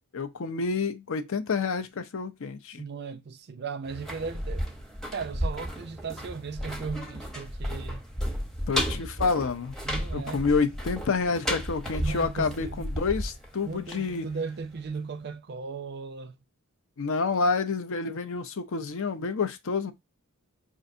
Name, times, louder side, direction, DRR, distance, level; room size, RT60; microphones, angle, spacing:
voice 1, 0.1-2.8 8.7-9.7 10.1-14.3 17.0-19.9, left 4 dB, 65° left, 0.6 m, -28 dB
voice 2, 2.7-4.7 5.1-8.0 9.9-10.4 12.0-12.9 13.6-16.3, right 5 dB, 50° right, 0.5 m, -36 dB
sound 1, 3.8-14.7 15.0-15.1, equal, ahead, 0.7 m, -33 dB
5.2 x 2.6 x 2.6 m
head